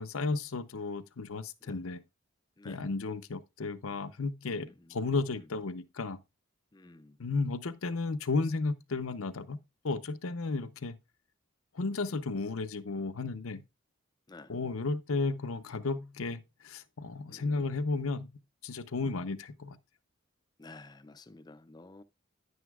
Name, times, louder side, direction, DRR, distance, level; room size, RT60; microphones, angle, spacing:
voice 1, 0.0-2.0 2.6-6.2 7.2-9.6 9.8-11.0 11.7-13.6 14.5-18.3 18.6-19.8, left 3 dB, 75° left, 0.7 m, -33 dB
voice 2, 4.4-4.9 5.3-5.5 6.7-7.2 14.3-14.5 17.3-17.6 20.6-22.0, left 2 dB, 20° left, 0.4 m, -52 dB
10.0 x 9.4 x 2.3 m
head